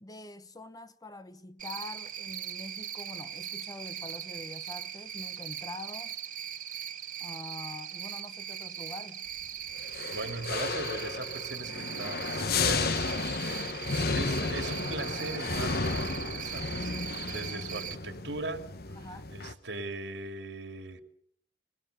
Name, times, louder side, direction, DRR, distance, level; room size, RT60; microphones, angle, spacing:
voice 1, 0.0-6.2 7.2-9.3 18.9-19.3, left 2 dB, 20° left, 0.9 m, -45 dB
Cricket, 1.6-18.0, right 9 dB, 45° right, 1.5 m, -40 dB
sound 1, 9.8-19.5, left 4 dB, 55° left, 1.3 m, -33 dB
voice 2, 10.1-13.8 14.1-16.9 17.3-21.0, right 2 dB, 70° right, 2.6 m, -39 dB
22.5 x 21.0 x 6.8 m
head